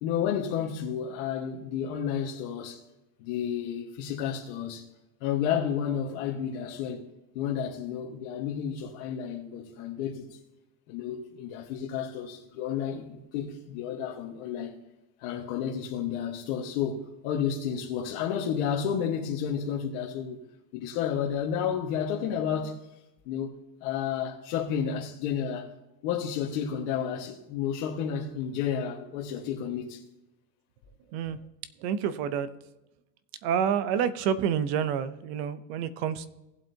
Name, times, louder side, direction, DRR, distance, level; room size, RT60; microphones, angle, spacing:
voice 1, 0.0-2.8 3.2-4.8 5.2-7.1 7.3-10.4 10.9-14.8 15.2-20.4 20.7-22.8 23.2-23.5 23.8-25.7 26.0-30.0, left 8 dB, 50° left, 1.4 m, -31 dB
voice 2, 31.8-32.5 33.4-36.3, right 8 dB, 40° right, 0.7 m, -28 dB
18.0 x 7.9 x 2.8 m
supercardioid pair, 175°, 48 cm